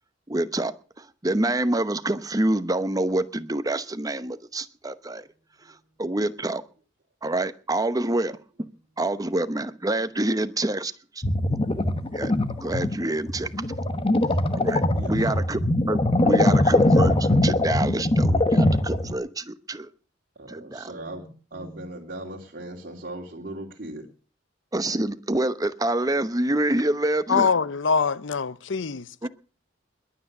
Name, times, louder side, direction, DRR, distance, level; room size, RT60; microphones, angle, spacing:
voice 1, 0.3-5.2 6.0-6.6 7.2-8.4 9.0-10.9 12.1-12.3 12.6-13.5 14.5-15.6 15.9-19.9 20.5-20.9 24.7-27.6 29.2-29.3, right 1 dB, 20° right, 0.9 m, -26 dB
sound 1, 11.2-19.1, left 1 dB, 30° left, 1.1 m, -22 dB
voice 2, 14.9-15.4 20.4-24.0, right 1 dB, 50° right, 2.7 m, -38 dB
voice 3, 27.3-29.0, left 5 dB, 85° left, 0.7 m, -23 dB
21.5 x 9.0 x 6.7 m
head